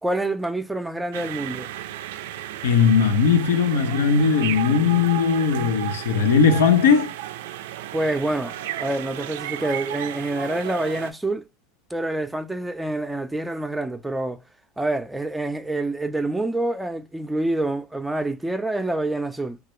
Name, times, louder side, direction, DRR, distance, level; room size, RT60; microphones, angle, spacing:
voice 1, 0.0-1.7 7.9-11.4 11.9-14.4 14.8-19.6, right 2 dB, 5° right, 0.5 m, -27 dB
sound 1, 1.1-11.1, right 13 dB, 80° right, 0.3 m, -33 dB
voice 2, 2.6-7.1, left 6 dB, 90° left, 0.6 m, -18 dB
3.0 x 2.4 x 3.0 m
supercardioid pair, 110°, 0 cm